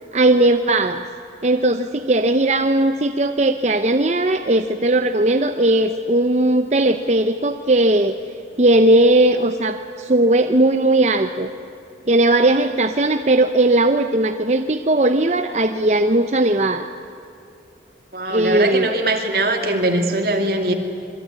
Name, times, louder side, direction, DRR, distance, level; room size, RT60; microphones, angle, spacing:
voice 1, 0.1-1.0 1.4-8.2 8.6-11.5 12.1-16.9 18.3-18.9, right 1 dB, 40° right, 7 dB, 0.8 m, -17 dB
voice 2, 18.1-20.7, right 2 dB, 55° right, 3 dB, 2.7 m, -21 dB
26.5 x 22.5 x 9.7 m, 2.7 s
head